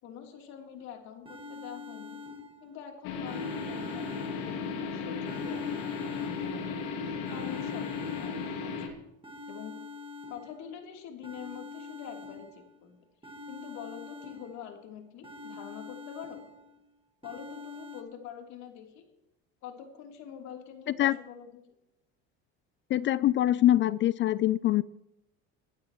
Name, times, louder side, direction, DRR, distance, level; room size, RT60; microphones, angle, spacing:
voice 1, 0.0-2.2 2.6-6.9 7.3-8.7 9.5-9.8 10.3-13.0 13.2-16.4 17.2-19.0 19.6-21.6, left 8 dB, 65° left, 3 dB, 3.3 m, -45 dB
sound 1, 0.8-0.9 1.3-2.8 3.3-4.8 5.3-6.8 7.3-8.8 9.2-10.8 11.2-12.8 13.2-14.8 15.2-16.8 17.2-18.0, left 3 dB, 15° right, 1.9 m, -45 dB
sound 2, 3.0-8.9, left 5 dB, 85° left, 2.5 m, -35 dB
voice 2, 22.9-24.8, left 13 dB, 40° left, 19 dB, 0.4 m, -24 dB
21.5 x 12.0 x 3.1 m, 0.89 s
supercardioid pair, 115°, 30 cm